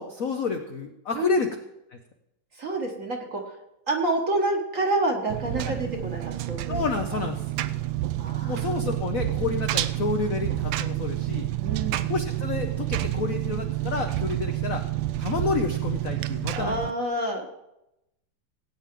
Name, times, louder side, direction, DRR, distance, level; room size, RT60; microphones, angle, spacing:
voice 1, 0.0-1.5 5.6-5.7 6.7-7.4 8.5-11.5 12.1-14.8 15.2-16.9, left 5 dB, 60° left, 5 dB, 0.9 m, -29 dB
voice 2, 2.6-3.4 3.9-6.8 7.1-7.2 8.2-8.9 11.6-12.1 16.5-17.4, right 2 dB, 40° right, 2 dB, 1.5 m, -28 dB
Engine, 5.3-16.9, right 15 dB, 75° right, 1.2 m, -29 dB
18.5 x 8.9 x 3.7 m, 0.87 s
omnidirectional pair, 2.4 m